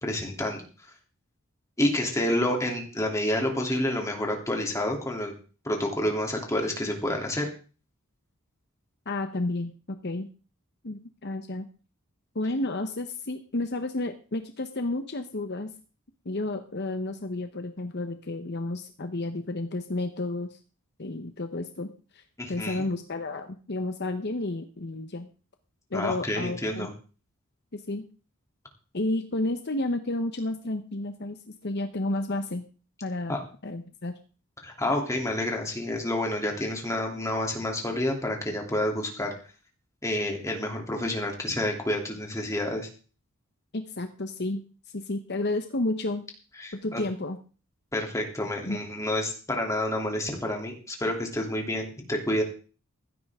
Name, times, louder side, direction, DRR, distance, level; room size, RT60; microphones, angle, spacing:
voice 1, 0.0-0.6 1.8-5.3 5.6-7.5 22.4-22.9 25.9-26.9 33.3-33.4 34.6-39.3 40.0-42.9 46.6-47.0 47.9-52.4, left 1 dB, 15° left, 1 dB, 3.1 m, -29 dB
voice 2, 9.1-9.7 10.0-10.3 10.8-11.7 12.3-15.7 16.2-20.6 21.0-21.9 22.1-22.2 22.5-25.3 25.9-26.9 27.7-28.0 28.9-32.6 33.0-33.4 33.6-34.1 43.7-44.6 44.9-46.2 46.7-47.4 48.6-48.8, left 2 dB, 50° left, 7 dB, 1.0 m, -31 dB
16.0 x 12.5 x 3.7 m, 0.37 s
head